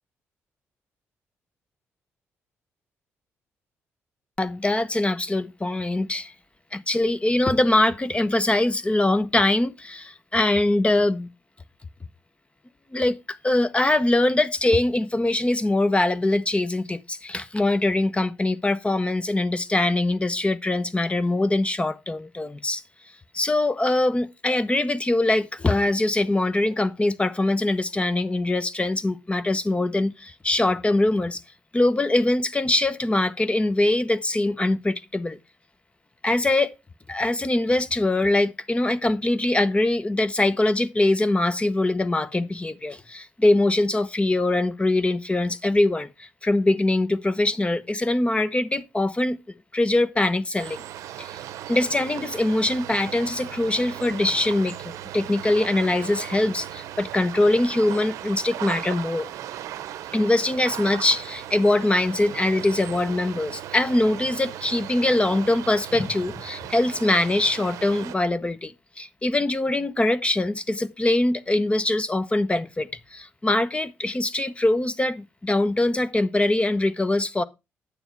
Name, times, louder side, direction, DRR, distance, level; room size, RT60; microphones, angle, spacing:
voice 1, 4.4-6.3 6.7-11.3 12.9-13.2 13.4-22.8 23.3-31.4 31.7-35.4 36.2-36.8 37.1-49.4 49.7-50.8 51.2-51.4 51.7-59.3 60.1-77.4, left 2 dB, 20° left, 0.9 m, -23 dB
sound 1, 50.5-68.2, right 12 dB, 85° right, 0.7 m, -37 dB
9.4 x 7.0 x 4.6 m
supercardioid pair, 65°, 5 cm